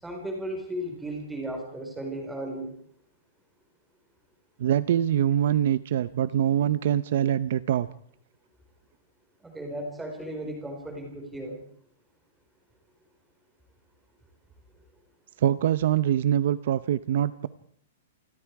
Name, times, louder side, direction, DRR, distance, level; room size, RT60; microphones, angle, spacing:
voice 1, 0.0-2.7 9.4-11.6, right 1 dB, 5° right, 2 dB, 4.8 m, -35 dB
voice 2, 4.6-7.9 15.4-17.5, right 10 dB, 50° right, 15 dB, 0.8 m, -24 dB
28.0 x 20.5 x 4.8 m, 0.63 s
supercardioid pair, 180°, 0 cm